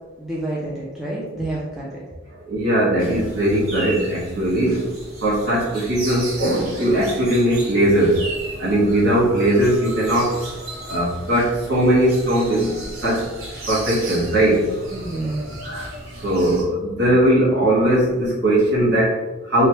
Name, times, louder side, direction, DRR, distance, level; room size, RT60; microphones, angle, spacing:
voice 1, 0.2-2.0 14.9-15.8, right 1 dB, ahead, -7 dB, 0.4 m, -29 dB
voice 2, 2.5-4.9 5.2-8.3 8.6-10.4 10.9-12.7 13.0-13.3 13.7-14.7 15.6-15.9 16.2-19.7, right 1 dB, 55° right, -7 dB, 1.1 m, -19 dB
sound 1, 3.0-16.6, right 1 dB, 85° right, 0.9 m, -35 dB
3.0 x 2.2 x 2.9 m, 1.2 s
head